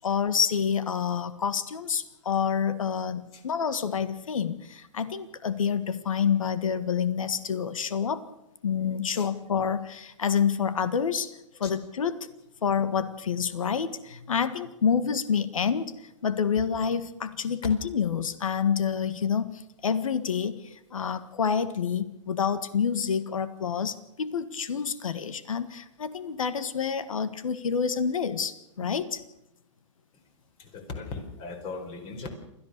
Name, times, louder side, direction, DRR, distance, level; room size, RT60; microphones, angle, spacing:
voice 1, 0.0-8.3 8.6-12.3 12.6-16.0 16.2-29.2, left 7 dB, 90° left, 13 dB, 1.7 m, -28 dB
voice 2, 30.6-32.3, left 4 dB, 30° left, 7 dB, 4.5 m, -39 dB
28.5 x 14.0 x 6.7 m, 0.87 s
hypercardioid pair, 140°, 17 cm